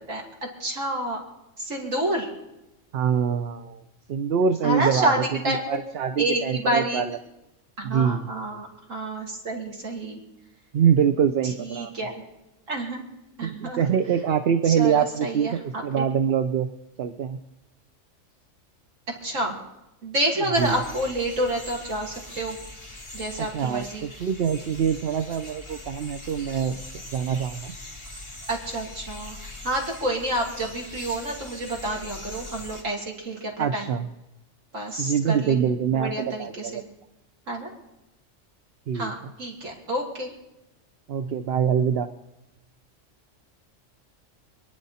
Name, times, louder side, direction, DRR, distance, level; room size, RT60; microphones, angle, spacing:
voice 1, 0.1-1.2 1.6-2.3 4.6-5.6 6.2-7.0 7.8-10.2 11.4-12.1 12.7-13.1 13.4-13.8 14.7-16.0 19.2-19.6 20.0-22.6 23.1-24.1 28.5-33.9 34.7-36.8 37.5-37.7 38.9-40.3, right 1 dB, 80° right, -1 dB, 3.0 m, -29 dB
voice 2, 2.9-3.8 4.1-7.2 7.8-8.3 10.7-11.9 13.4-16.7 17.0-17.4 20.6-20.8 23.4-27.8 33.6-34.1 35.0-36.8 38.9-39.3 41.1-42.1, right 7 dB, 55° right, 9 dB, 0.8 m, -24 dB
sound 1, 20.5-32.8, left 2 dB, 20° left, 2.3 m, -41 dB
26.5 x 10.5 x 4.2 m, 0.96 s
omnidirectional pair, 1.3 m